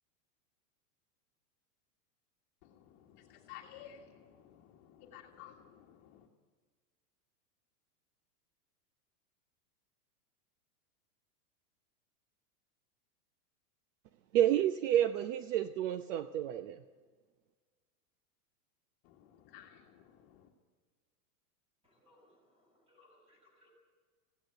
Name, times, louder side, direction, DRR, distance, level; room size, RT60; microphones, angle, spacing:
voice 1, 2.6-6.3 19.0-20.5, left 10 dB, 40° left, 1 dB, 1.7 m, -55 dB
voice 2, 14.3-16.8, right 11 dB, 50° right, 11 dB, 0.8 m, -30 dB
voice 3, 21.8-23.7, left 1 dB, 10° right, 0 dB, 7.1 m, -66 dB
21.5 x 16.5 x 7.9 m, 1.5 s
supercardioid pair, 160°, 47 cm